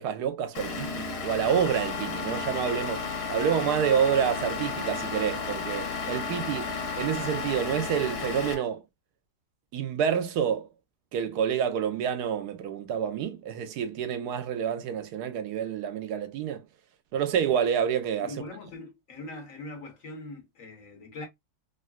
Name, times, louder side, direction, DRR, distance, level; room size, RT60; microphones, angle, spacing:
voice 1, 0.0-8.8 9.7-10.7 11.1-16.6 17.1-18.3, right 8 dB, 80° right, 1.1 m, -28 dB
Vehicle / Engine, 0.5-8.5, left 4 dB, 75° left, 1.5 m, -34 dB
Wind instrument woodwind instrument, 1.1-8.7, left 7 dB, 20° left, 1.0 m, -38 dB
voice 2, 18.2-21.3, left 2 dB, 55° left, 1.4 m, -41 dB
3.8 x 2.1 x 2.3 m
omnidirectional pair, 1.7 m